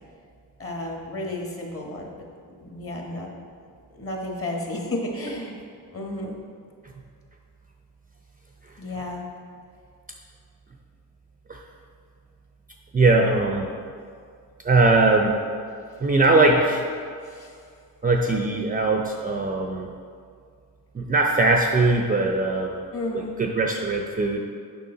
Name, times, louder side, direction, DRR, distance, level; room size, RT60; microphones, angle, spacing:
voice 1, 0.6-2.2 2.5-3.3 3.9-5.6 5.9-6.4 8.8-9.2 17.2-17.6 22.9-23.3, left 1 dB, 35° left, 0 dB, 1.4 m, -32 dB
voice 2, 12.9-13.7 14.6-15.4 16.0-16.8 18.0-19.9 20.9-22.8 23.4-24.4, right 2 dB, 20° right, 2 dB, 0.5 m, -20 dB
6.8 x 5.6 x 3.9 m, 2.2 s
cardioid pair, 80°, 41 cm